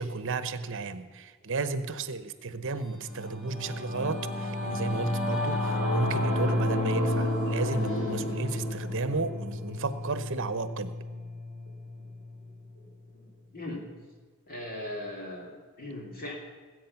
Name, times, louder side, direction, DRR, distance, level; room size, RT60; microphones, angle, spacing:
voice 1, 0.0-10.9, right 4 dB, 65° right, 12 dB, 0.9 m, -33 dB
Singing / Musical instrument, 2.8-12.5, left 1 dB, 65° left, 4.2 m, -31 dB
voice 2, 11.8-12.1 12.7-13.8 14.5-16.3, left 1 dB, 45° left, -1 dB, 3.1 m, -40 dB
19.0 x 8.6 x 5.9 m, 1.5 s
head